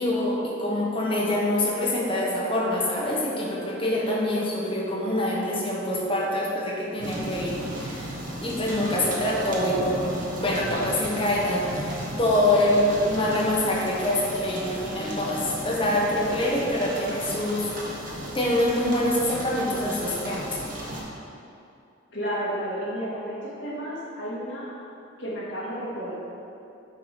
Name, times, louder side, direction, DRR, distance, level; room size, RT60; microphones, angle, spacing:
voice 1, 0.0-17.7 18.3-20.6, left 1 dB, 25° left, -4 dB, 1.2 m, -25 dB
sound 1, 7.0-21.0, equal, 40° right, 1.3 m, -35 dB
voice 2, 22.1-24.7 25.2-26.1, equal, 60° left, -7 dB, 2.0 m, -32 dB
8.8 x 4.8 x 5.3 m, 2.7 s
head